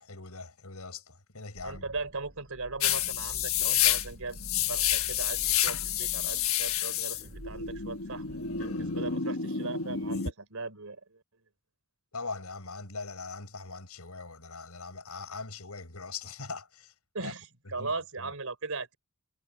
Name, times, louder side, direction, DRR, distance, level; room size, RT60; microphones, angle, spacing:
voice 1, 0.0-1.9 12.1-16.9 17.2-17.3 17.8-17.9 18.2-18.3, left 4 dB, 90° left, 5.6 m, -41 dB
sound 1, 1.5-8.8, equal, 45° right, 6.9 m, -49 dB
voice 2, 1.6-11.2 17.1-19.0, right 3 dB, 70° right, 4.2 m, -39 dB
sound 2, 2.8-10.3, left 10 dB, 65° left, 1.4 m, -29 dB
head